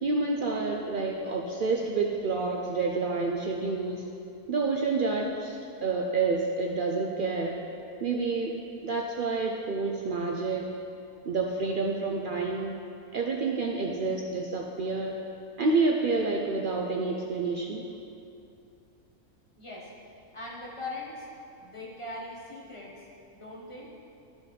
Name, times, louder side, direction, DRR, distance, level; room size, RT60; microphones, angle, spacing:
voice 1, 0.0-4.0 4.5-7.6 8.0-8.5 8.8-10.7 11.2-12.8 13.1-15.2 15.6-17.9, right 3 dB, 90° right, 0 dB, 0.4 m, -28 dB
voice 2, 19.6-19.9 20.3-21.3 21.6-23.1 23.3-23.9, left 2 dB, 25° left, -5 dB, 1.2 m, -40 dB
12.0 x 5.3 x 3.2 m, 2.7 s
omnidirectional pair, 1.5 m